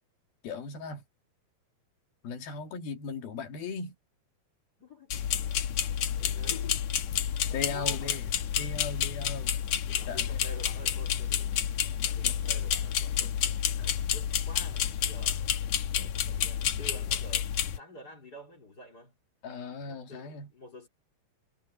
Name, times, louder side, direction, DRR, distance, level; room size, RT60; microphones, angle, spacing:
voice 1, 0.4-1.0 2.2-3.9 7.5-8.2 8.6-9.5 10.1-10.4 12.2-12.3 13.8-13.9 19.4-20.5, left 4 dB, 85° left, 4.3 m, -37 dB
voice 2, 4.8-7.0 7.5-8.2 8.6-8.7 9.9-11.6 12.0-15.4 15.9-19.2 19.8-20.9, left 1 dB, 30° left, 3.6 m, -49 dB
sound 1, 5.1-17.8, left 9 dB, 60° left, 2.1 m, -30 dB
omnidirectional pair, 4.2 m